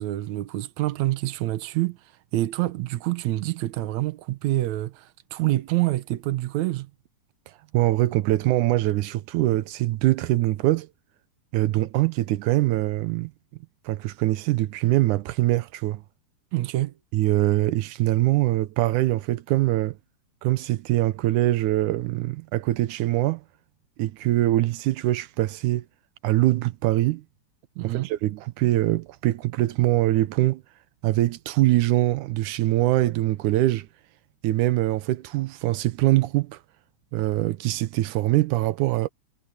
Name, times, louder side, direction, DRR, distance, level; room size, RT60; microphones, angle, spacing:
voice 1, 0.0-2.0 2.3-6.9 16.5-16.9 27.8-28.1, right 16 dB, 70° right, 2.2 m, -26 dB
voice 2, 7.7-10.9 11.5-13.3 13.9-16.0 17.1-20.0 20.4-23.4 24.0-25.9 26.2-27.2 27.8-30.6 31.0-33.9 34.4-36.6 37.1-39.1, right 16 dB, 90° right, 2.2 m, -23 dB
omnidirectional pair, 3.5 m